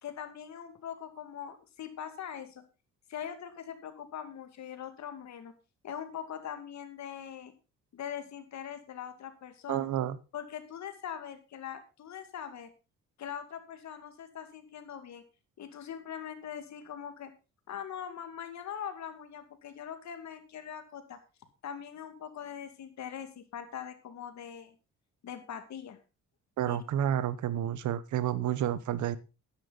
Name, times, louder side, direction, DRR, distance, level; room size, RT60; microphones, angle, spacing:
voice 1, 0.0-2.6 3.1-5.5 5.8-7.5 7.9-9.9 10.3-12.7 13.2-15.2 15.6-17.3 17.7-21.2 21.6-24.7 25.2-26.0 26.7-26.8, left 8 dB, 65° left, 2.3 m, -42 dB
voice 2, 9.7-10.2 26.6-29.2, right 11 dB, 75° right, 1.1 m, -30 dB
11.5 x 10.5 x 4.0 m
cardioid pair, 90°, 30 cm